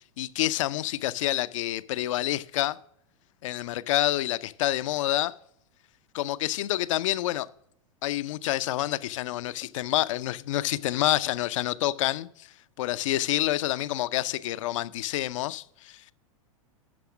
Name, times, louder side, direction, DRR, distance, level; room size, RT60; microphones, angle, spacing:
voice 1, 0.2-2.8 3.4-5.3 6.1-7.5 8.0-12.5 12.8-16.1, left 15 dB, 60° left, 0.5 m, -28 dB
12.0 x 4.8 x 6.1 m
hypercardioid pair, 105°, 18 cm